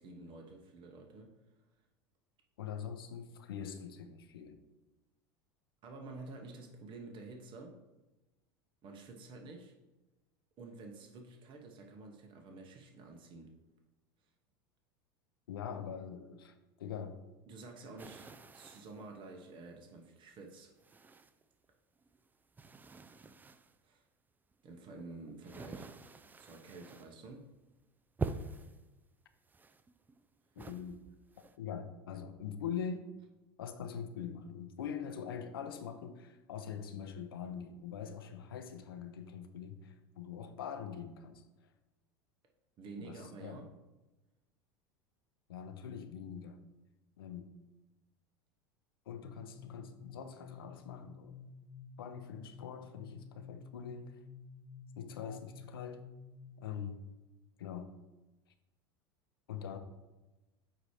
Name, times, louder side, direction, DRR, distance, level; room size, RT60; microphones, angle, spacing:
voice 1, 0.0-1.3 5.8-7.8 8.8-9.7 10.6-13.5 17.5-20.7 23.8-24.1 24.6-27.5 42.8-43.7, right 3 dB, 45° right, 2 dB, 1.0 m, -50 dB
voice 2, 2.6-4.6 15.5-17.2 30.5-31.0 31.6-33.1 33.6-41.7 43.0-43.7 45.5-46.6 47.2-47.5 49.1-51.4 52.0-54.2 55.0-56.0 56.6-57.0 57.6-57.9 59.5-59.8, left 7 dB, 85° left, 8 dB, 0.7 m, -43 dB
sound 1, 18.0-19.0 19.7-19.8 20.8-21.6 22.0-23.8 24.5-27.2 27.5-27.8 28.2-28.8 29.4-30.2 30.6-31.5, right 4 dB, 15° right, 0.4 m, -45 dB
sound 2, 49.2-56.8, left 5 dB, 15° left, 1.5 m, -52 dB
7.8 x 2.8 x 4.8 m, 1.1 s
hypercardioid pair, 95°, 12 cm